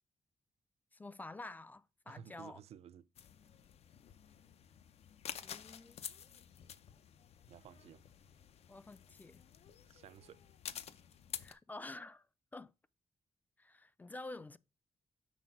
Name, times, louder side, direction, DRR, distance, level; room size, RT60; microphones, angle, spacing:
voice 1, 0.9-2.6 5.4-6.0 8.7-9.4 11.4-12.3 12.5-12.7 13.6-14.6, left 2 dB, 15° left, 0.3 m, -49 dB
voice 2, 2.1-3.1 7.5-8.0 9.9-10.4, right 9 dB, 80° right, 0.4 m, -54 dB
sound 1, 3.2-11.5, left 8 dB, 80° left, 0.6 m, -50 dB
6.1 x 4.5 x 5.8 m
wide cardioid pair, 145°, 11 cm